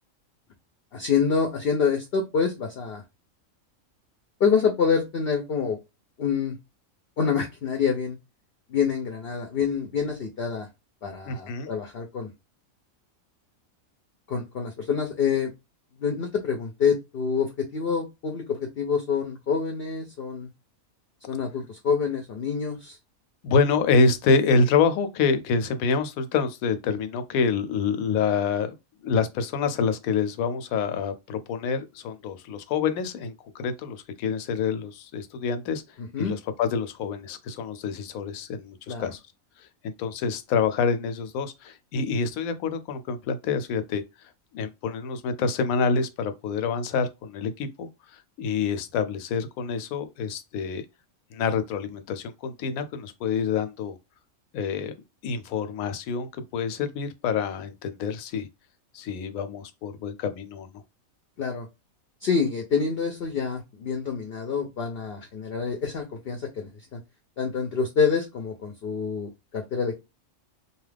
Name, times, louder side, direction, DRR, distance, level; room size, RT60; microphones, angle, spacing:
voice 1, 0.9-3.0 4.4-5.8 6.2-6.5 7.2-8.2 8.7-10.7 11.0-12.3 14.3-15.5 16.0-20.5 21.3-23.0 36.0-36.3 38.9-39.1 61.4-61.7 62.2-67.0 67.4-70.0, left 6 dB, 60° left, 0.7 m, -27 dB
voice 2, 11.3-11.7 23.4-28.7 29.0-35.8 36.2-39.2 39.8-44.0 44.5-47.9 48.4-50.8 51.3-54.0 54.5-54.9 55.2-58.5 58.9-60.8, left 5 dB, 80° left, 1.0 m, -26 dB
2.7 x 2.3 x 3.3 m
omnidirectional pair, 1.5 m